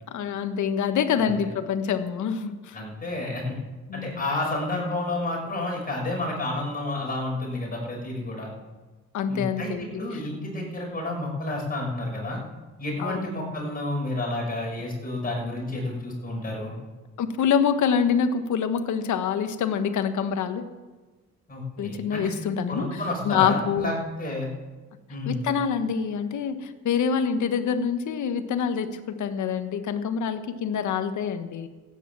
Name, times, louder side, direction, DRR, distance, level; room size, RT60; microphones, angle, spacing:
voice 1, 0.1-2.8 3.9-4.2 9.1-10.2 13.0-13.3 17.2-20.7 21.8-23.9 25.3-31.7, left 7 dB, 75° left, 9 dB, 1.4 m, -26 dB
voice 2, 2.7-3.6 3.9-8.5 9.3-12.4 12.8-16.7 21.5-22.3 22.7-24.5 25.1-25.4, left 2 dB, 30° left, -2 dB, 6.5 m, -30 dB
15.0 x 10.0 x 7.5 m, 1.3 s
cardioid pair, 90°, 30 cm